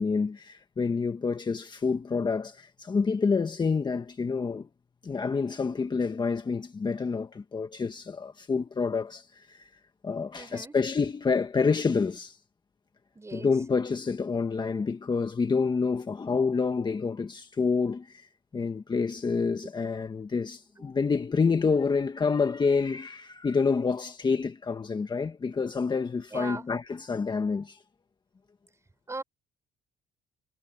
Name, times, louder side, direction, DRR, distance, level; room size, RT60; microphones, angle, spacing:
voice 1, 0.0-4.7 5.0-9.7 10.0-12.4 13.3-27.8, left 5 dB, 25° left, 1.6 m, -28 dB
voice 2, 10.3-10.8 13.1-13.5 26.3-26.6 29.1-29.2, right 3 dB, 15° right, 6.0 m, -38 dB
cardioid pair, 110°, 17 cm